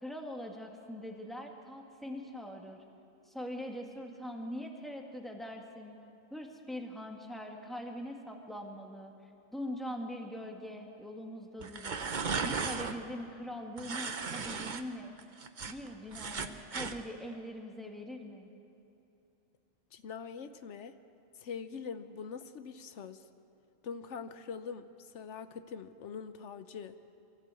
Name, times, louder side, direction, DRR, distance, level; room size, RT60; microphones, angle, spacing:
voice 1, 0.0-2.8 3.3-6.0 6.3-9.1 9.5-12.0 12.4-15.1 15.7-18.5, equal, ahead, 1 dB, 2.0 m, -42 dB
sound 1, 11.6-13.0 13.8-14.8 15.2-17.0, right 5 dB, 45° right, 1.0 m, -36 dB
voice 2, 19.9-20.9 21.3-23.3 23.8-26.9, left 6 dB, 80° left, 11 dB, 1.1 m, -43 dB
24.0 x 15.5 x 8.4 m, 2.8 s
omnidirectional pair, 1.2 m